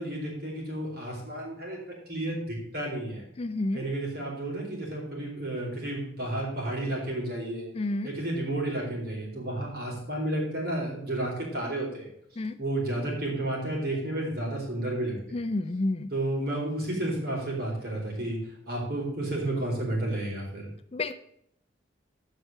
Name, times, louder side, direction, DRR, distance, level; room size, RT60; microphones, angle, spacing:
voice 1, 0.0-1.8 2.1-3.2 3.7-7.7 8.0-15.4 16.1-20.7, right 1 dB, 55° right, -3 dB, 4.3 m, -32 dB
voice 2, 3.4-3.8 7.7-8.1 12.4-12.6 15.3-16.1 20.9-21.2, left 2 dB, 30° left, 11 dB, 0.4 m, -30 dB
8.2 x 6.0 x 7.8 m, 0.71 s
head